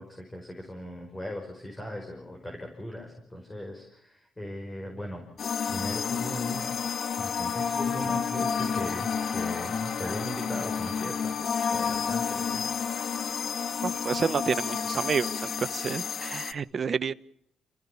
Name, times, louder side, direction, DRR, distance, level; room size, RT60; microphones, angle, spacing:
voice 1, 0.0-5.2 5.7-6.7 7.2-11.4 11.7-12.6, equal, 15° left, 2 dB, 5.3 m, -38 dB
sound 1, 5.4-16.5, left 6 dB, 55° left, 1.0 m, -30 dB
sound 2, 6.5-15.6, right 11 dB, 70° right, 2.5 m, -50 dB
voice 2, 13.8-17.1, right 6 dB, 45° right, 15 dB, 0.9 m, -29 dB
28.0 x 16.0 x 7.1 m, 0.76 s
cardioid pair, 90°, 0 cm